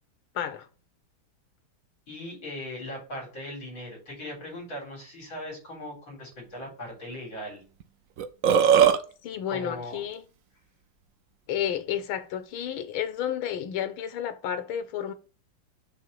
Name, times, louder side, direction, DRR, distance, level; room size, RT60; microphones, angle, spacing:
voice 1, 0.3-0.7 9.2-10.2 11.5-15.1, left 9 dB, 85° left, 1.7 m, -31 dB
voice 2, 2.1-7.6 9.5-10.0, left 1 dB, 65° left, 4.7 m, -39 dB
Burping eructation, 7.8-7.9 8.2-9.0, right 8 dB, 85° right, 0.7 m, -18 dB
8.1 x 3.2 x 5.4 m
omnidirectional pair, 2.3 m